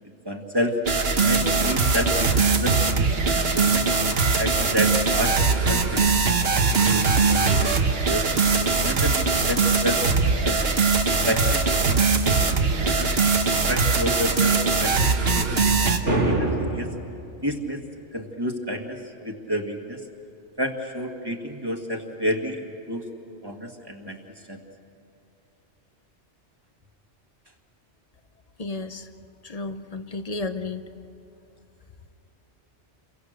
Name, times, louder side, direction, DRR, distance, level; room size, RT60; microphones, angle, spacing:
voice 1, 0.3-0.8 1.2-3.9 4.4-5.4 5.7-8.3 8.8-10.0 10.4-10.7 11.2-13.1 13.7-16.9 17.4-17.8 18.1-20.0 20.6-23.0 23.4-24.2 24.5-24.6, equal, 20° right, 3 dB, 1.9 m, -30 dB
sound 1, 0.9-16.0, right 4 dB, 55° right, 1.5 m, -21 dB
sound 2, 16.1-17.1, right 2 dB, 80° right, 3.3 m, -24 dB
voice 2, 28.6-29.1 29.4-30.8, left 3 dB, 35° left, 9 dB, 0.9 m, -32 dB
29.5 x 23.5 x 6.6 m, 2.8 s
omnidirectional pair, 1.2 m